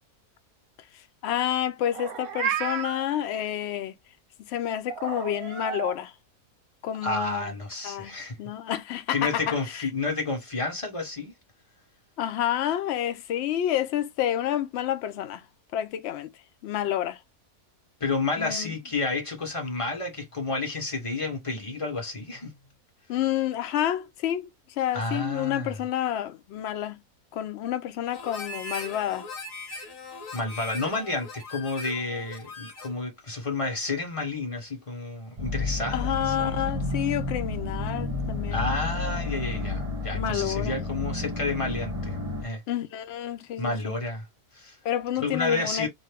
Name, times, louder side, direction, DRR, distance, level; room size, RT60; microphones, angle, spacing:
voice 1, 0.9-3.9 4.5-6.1 6.8-7.6 7.8-9.8 12.2-15.5 15.7-16.3 16.6-17.2 18.4-18.7 23.1-24.5 24.8-27.0 27.3-29.3 35.9-38.7 40.1-40.8 42.7-43.9 44.8-45.9, left 11 dB, 80° left, 0.6 m, -29 dB
Meow, 1.9-3.0 4.9-5.9, right 8 dB, 70° right, 1.0 m, -32 dB
voice 2, 7.0-8.4 9.1-11.3 18.0-22.6 24.9-25.8 30.3-36.7 38.5-42.6 43.6-44.3 44.5-44.8 45.2-45.9, left 3 dB, 25° left, 1.1 m, -30 dB
Harmonica, 28.1-33.0, left 2 dB, 60° left, 1.2 m, -40 dB
sound 1, 35.4-42.5, left 3 dB, 25° right, 1.0 m, -31 dB
2.6 x 2.6 x 3.3 m
omnidirectional pair, 1.7 m